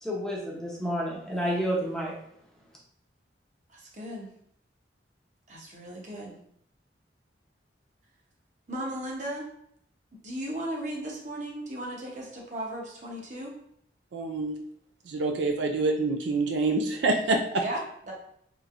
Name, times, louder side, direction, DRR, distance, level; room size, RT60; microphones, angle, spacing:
voice 1, 0.0-2.1, equal, 5° left, -4 dB, 0.6 m, -30 dB
voice 2, 3.7-4.3 5.5-6.3 8.7-9.4 10.2-13.5 17.6-18.1, right 1 dB, 40° right, -2 dB, 0.8 m, -36 dB
voice 3, 14.1-14.6 15.1-17.4, right 3 dB, 75° right, 4 dB, 0.4 m, -26 dB
3.2 x 3.1 x 2.4 m, 0.70 s
head